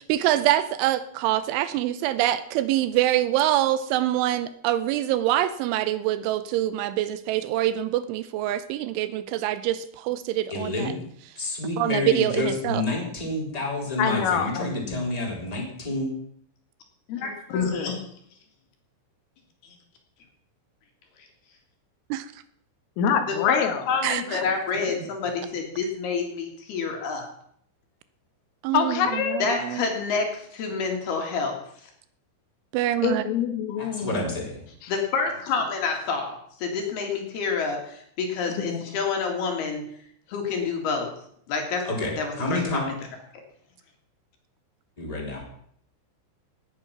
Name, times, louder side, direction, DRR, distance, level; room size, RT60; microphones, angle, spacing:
voice 1, 0.1-10.9 11.8-12.8 22.1-22.3 24.0-24.4 28.6-29.8 32.7-33.2, right 13 dB, 80° right, 14 dB, 3.0 m, -25 dB
voice 2, 10.5-11.0 11.3-16.1 33.8-34.6 41.8-42.9 45.0-45.4, left 2 dB, 10° left, -2 dB, 2.9 m, -29 dB
voice 3, 14.0-15.0 23.0-23.9 24.3-24.4 28.7-29.4 33.0-34.3 34.8-34.9 38.6-38.8, left 7 dB, 85° left, 6 dB, 4.1 m, -25 dB
voice 4, 17.1-17.9 19.6-19.8 23.3-27.3 29.4-31.6 34.9-39.8 40.3-41.1 41.5-41.8 42.2-42.9, left 5 dB, 60° left, 2 dB, 3.9 m, -28 dB
17.5 x 9.2 x 5.8 m, 0.66 s
omnidirectional pair, 5.7 m